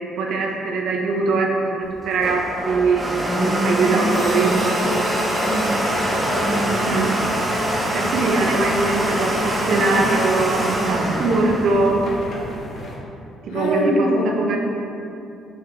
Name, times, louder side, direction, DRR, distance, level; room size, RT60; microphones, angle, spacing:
voice 1, 0.2-3.0 3.6-4.6 6.9-7.1 7.9-11.9 13.5-14.6, right 3 dB, 65° right, 0 dB, 0.6 m, -21 dB
Domestic sounds home sounds, 1.8-12.5, right 1 dB, 20° right, 0.6 m, -23 dB
sound 1, 4.1-13.0, left 1 dB, 50° left, 0.8 m, -33 dB
sound 2, 4.1-8.5, equal, 15° left, 1.1 m, -35 dB
voice 2, 5.3-6.9 13.5-14.6, left 1 dB, 85° left, 0 dB, 0.6 m, -26 dB
5.7 x 2.8 x 3.3 m, 2.7 s
cardioid pair, 100°, 0 cm